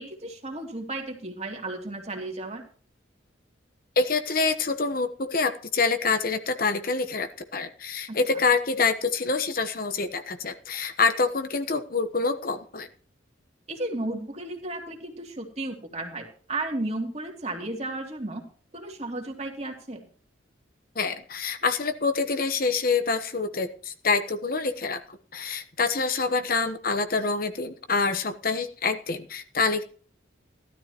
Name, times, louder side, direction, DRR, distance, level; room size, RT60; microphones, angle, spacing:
voice 1, 0.0-2.7 8.1-8.2 13.7-18.4 18.7-20.0, right 2 dB, 35° right, 2 dB, 2.7 m, -34 dB
voice 2, 4.0-12.9 20.9-29.8, left 4 dB, 45° left, 9 dB, 1.1 m, -26 dB
15.5 x 13.0 x 3.0 m, 0.43 s
head